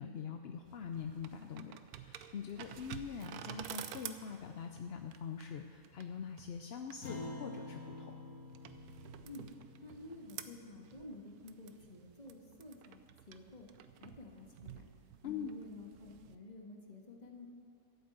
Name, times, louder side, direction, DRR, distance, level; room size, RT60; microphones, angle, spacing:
voice 1, 0.0-8.1 15.2-15.5, left 7 dB, 60° left, 5 dB, 0.7 m, -44 dB
sound 1, 0.6-16.3, right 10 dB, 85° right, 1.2 m, -51 dB
Acoustic guitar, 7.0-11.7, left 2 dB, 80° left, 1.9 m, -49 dB
voice 2, 9.8-13.0 13.3-13.7 14.0-14.8 15.2-17.5, left 2 dB, 30° left, 1 dB, 1.7 m, -51 dB
13.0 x 8.2 x 7.9 m, 2.4 s
omnidirectional pair, 1.5 m